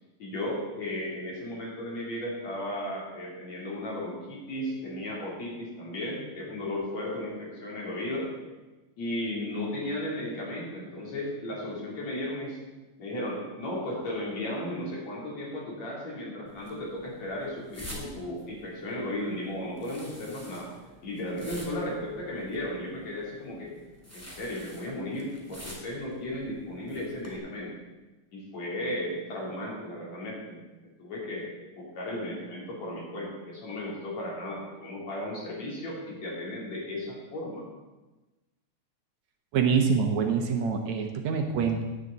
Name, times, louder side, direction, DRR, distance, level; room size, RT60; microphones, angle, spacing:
voice 1, 0.2-8.3 9.0-12.6 13.0-20.7 21.0-23.7 24.1-27.7 28.3-30.6 31.0-37.6, left 1 dB, 60° left, -4 dB, 4.6 m, -35 dB
sound 1, 16.4-27.4, equal, 5° left, 2.0 m, -48 dB
voice 2, 39.5-41.8, right 6 dB, 70° right, 4 dB, 2.3 m, -25 dB
16.5 x 9.8 x 4.1 m, 1.1 s
omnidirectional pair, 3.5 m